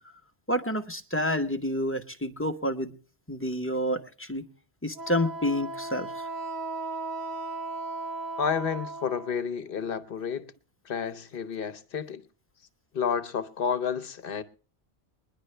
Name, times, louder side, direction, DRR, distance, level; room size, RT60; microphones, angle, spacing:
voice 1, 0.5-2.9 3.3-4.4 4.8-6.3, equal, 15° left, 0.8 m, -29 dB
Wind instrument woodwind instrument, 4.9-9.4, right 3 dB, 45° right, 0.9 m, -36 dB
voice 2, 8.4-10.5 10.8-12.2 12.9-14.4, left 6 dB, 60° left, 0.9 m, -30 dB
22.0 x 10.5 x 3.2 m
omnidirectional pair, 1.1 m